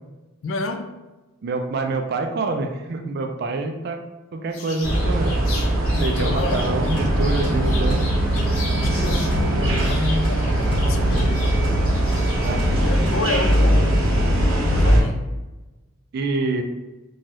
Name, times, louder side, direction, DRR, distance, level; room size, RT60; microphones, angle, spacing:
voice 1, 0.4-1.0 5.9-6.7 8.8-11.8 12.8-15.3, left 2 dB, 60° left, 0.3 m, -29 dB
voice 2, 1.4-4.0 4.3-5.4 6.0-8.0 12.4-12.9 16.1-16.6, right 3 dB, 50° right, 0.3 m, -26 dB
sound 1, 4.5-9.3 9.6-12.5, left 3 dB, 85° left, 0.7 m, -37 dB
sound 2, 4.8-15.0, right 1 dB, 75° right, 0.7 m, -20 dB
sound 3, 6.5-14.0, equal, 25° left, 1.1 m, -33 dB
2.7 x 2.2 x 3.2 m
head